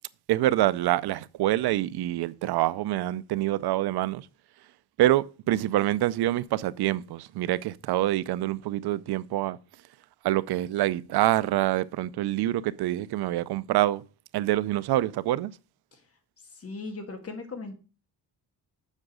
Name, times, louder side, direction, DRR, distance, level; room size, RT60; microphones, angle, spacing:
voice 1, 0.3-4.3 5.0-9.6 10.2-14.0 14.3-15.5, right 14 dB, 85° right, 0.6 m, -26 dB
voice 2, 16.4-17.7, left 3 dB, 40° left, 2.0 m, -38 dB
7.5 x 6.3 x 6.2 m
cardioid pair, 135°, 38 cm